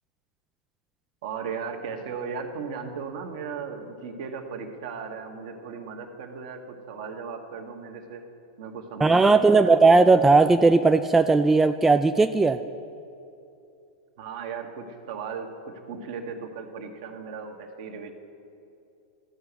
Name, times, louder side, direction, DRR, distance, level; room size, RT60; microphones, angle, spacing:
voice 1, 1.2-8.2 8.6-9.8 14.2-18.1, right 5 dB, 55° right, 4 dB, 1.3 m, -36 dB
voice 2, 9.0-12.6, right 3 dB, 10° right, 8 dB, 0.3 m, -17 dB
14.0 x 5.6 x 8.0 m, 2.7 s
figure-of-eight pair, 95°, 3 cm